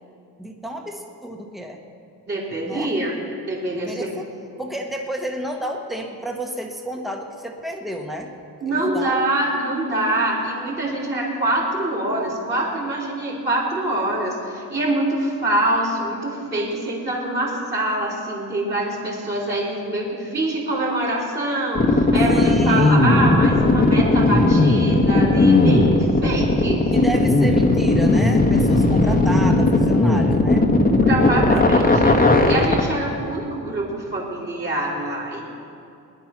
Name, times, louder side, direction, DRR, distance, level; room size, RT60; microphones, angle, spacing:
voice 1, 0.4-1.8 2.7-2.9 3.7-4.3 4.6-8.3 8.7-9.2 22.3-23.0 26.9-30.6 31.5-31.7, right 1 dB, ahead, 2 dB, 1.5 m, -31 dB
voice 2, 2.3-3.1 3.5-4.1 8.6-26.9 31.0-35.5, right 1 dB, 30° right, -5 dB, 3.9 m, -25 dB
sound 1, 21.7-32.8, left 2 dB, 25° left, 1.5 m, -16 dB
20.5 x 10.5 x 6.0 m, 2.5 s
cardioid pair, 125°, 37 cm